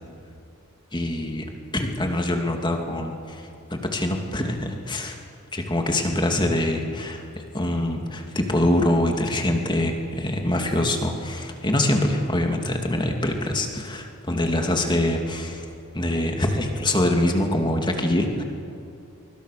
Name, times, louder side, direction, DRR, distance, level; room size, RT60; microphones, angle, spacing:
voice 1, 0.9-1.5 1.7-3.4 3.7-5.2 5.5-7.2 7.5-15.7 15.9-18.4, left 1 dB, 20° left, 3 dB, 2.6 m, -24 dB
25.0 x 23.5 x 6.8 m, 2.6 s
head